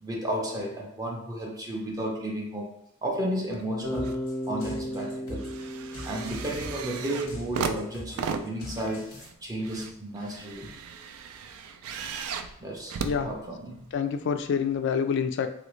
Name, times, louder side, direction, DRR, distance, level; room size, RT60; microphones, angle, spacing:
voice 1, 0.0-2.7 3.0-5.5 6.0-9.1 9.4-10.7 12.6-13.9, right 1 dB, 20° right, -1 dB, 0.4 m, -33 dB
sound 1, 3.5-4.2 4.6-14.0 14.7-14.8, right 6 dB, 85° right, 0.3 m, -37 dB
Bass guitar, 3.8-7.8, equal, 55° right, 0.7 m, -36 dB
sound 2, 3.9-9.3, left 1 dB, 90° left, 1.0 m, -42 dB
voice 2, 13.9-15.5, left 6 dB, 55° left, 9 dB, 0.3 m, -27 dB
3.1 x 2.5 x 3.0 m, 0.77 s
head